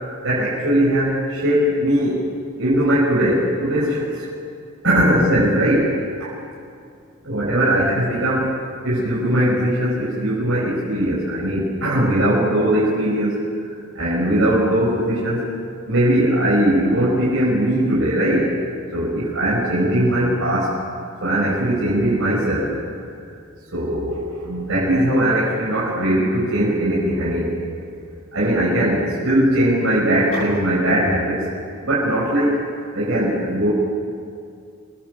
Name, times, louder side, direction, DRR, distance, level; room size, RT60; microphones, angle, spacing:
voice 1, 0.2-2.2 2.6-4.2 4.8-5.9 6.2-6.3 7.2-8.5 8.8-13.4 13.7-15.4 15.9-18.5 18.9-20.8 21.2-22.7 23.2-23.3 23.7-27.7 28.3-31.5 31.8-32.6 32.9-33.7, right 1 dB, 60° right, -7 dB, 5.9 m, -20 dB
27.5 x 22.0 x 8.1 m, 2.3 s
head